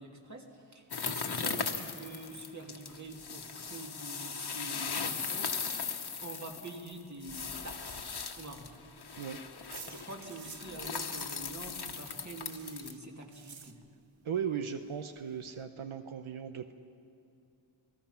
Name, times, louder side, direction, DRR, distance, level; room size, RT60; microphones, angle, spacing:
voice 1, 0.0-5.5 5.8-5.9 6.2-8.0 8.4-8.7 9.9-13.7, right 2 dB, 35° right, 1 dB, 2.9 m, -45 dB
sound 1, 0.9-12.9, left 5 dB, 50° left, 1.3 m, -38 dB
sound 2, 7.9-10.7 11.0-14.2 14.5-14.6 14.9-15.0 15.2-15.6, right 6 dB, 70° right, 1.3 m, -52 dB
voice 2, 14.2-16.7, right 7 dB, 85° right, 8 dB, 1.0 m, -37 dB
29.0 x 19.0 x 5.8 m, 2.5 s
wide cardioid pair, 100°, 48 cm